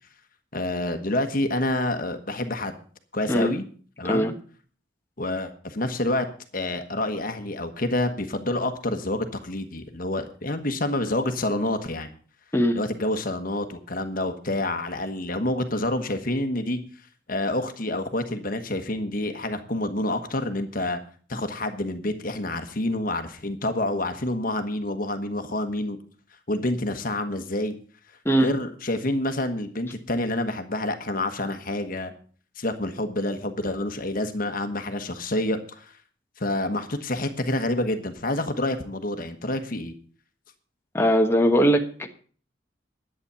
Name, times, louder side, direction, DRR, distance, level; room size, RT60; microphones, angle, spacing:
voice 1, 0.5-2.8 3.1-3.6 4.0-4.3 5.2-6.3 6.5-12.1 12.7-16.8 17.3-21.0 21.3-26.0 26.5-27.7 28.4-32.1 32.6-35.9 36.4-39.9, left 1 dB, 50° left, 8 dB, 1.3 m, -28 dB
voice 2, 40.9-42.1, equal, 15° left, 3 dB, 1.2 m, -20 dB
11.5 x 8.8 x 6.9 m, 0.43 s
head